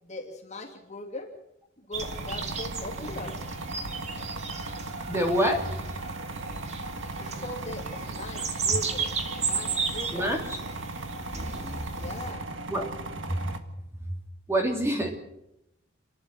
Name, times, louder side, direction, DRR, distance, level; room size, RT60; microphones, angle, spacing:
voice 1, 0.0-1.3 1.8-3.4 7.2-10.3 12.0-12.4, left 2 dB, 35° left, 1 dB, 3.0 m, -40 dB
sound 1, 1.9-12.3, right 5 dB, 35° right, 2.1 m, -35 dB
sound 2, 2.0-13.6, right 2 dB, 65° right, 1.6 m, -37 dB
voice 2, 5.1-5.8 8.7-8.8 10.0-10.6 12.7-12.9 13.3-13.5 14.0-14.2 14.5-15.2, right 1 dB, 15° right, 2 dB, 3.0 m, -27 dB
29.0 x 11.5 x 7.7 m, 0.83 s
head